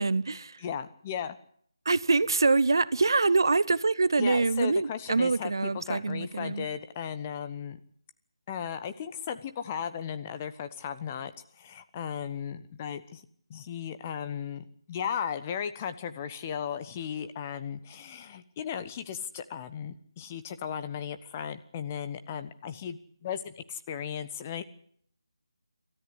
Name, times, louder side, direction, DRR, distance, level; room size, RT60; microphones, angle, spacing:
voice 1, 0.0-0.5 1.9-6.6, right 3 dB, 55° right, 0.8 m, -25 dB
voice 2, 0.6-1.4 4.2-7.8 8.5-11.3 11.6-13.2 13.5-24.6, left 8 dB, 25° left, 1.1 m, -36 dB
26.5 x 13.5 x 8.1 m
figure-of-eight pair, 155°, 3 cm